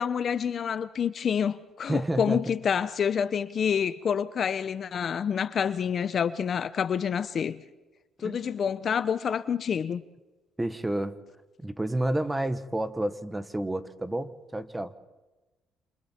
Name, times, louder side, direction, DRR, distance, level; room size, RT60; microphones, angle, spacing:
voice 1, 0.0-7.6 8.2-10.0, left 7 dB, 45° left, 0.7 m, -28 dB
voice 2, 1.9-2.4 8.2-8.4 10.6-11.2 11.6-14.9, right 1 dB, 10° right, 1.2 m, -30 dB
27.5 x 27.5 x 4.4 m
cardioid pair, 125°, 0 cm